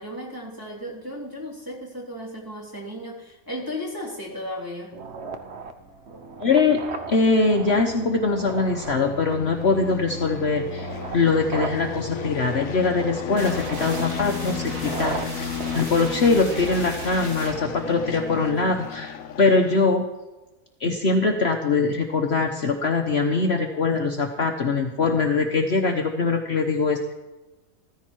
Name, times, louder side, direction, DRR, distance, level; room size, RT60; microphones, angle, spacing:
voice 1, 0.0-5.0, left 1 dB, 15° right, -4 dB, 3.6 m, -35 dB
sound 1, 4.9-16.9, right 4 dB, 50° right, 1.1 m, -37 dB
voice 2, 6.4-6.8 7.1-20.1 20.8-27.1, left 4 dB, 50° left, 3 dB, 1.2 m, -22 dB
sound 2, 6.5-19.8, left 8 dB, 70° left, 1.2 m, -34 dB
sound 3, 13.3-19.0, right 1 dB, 70° right, 2.6 m, -37 dB
14.5 x 14.5 x 4.6 m, 1.1 s
omnidirectional pair, 1.5 m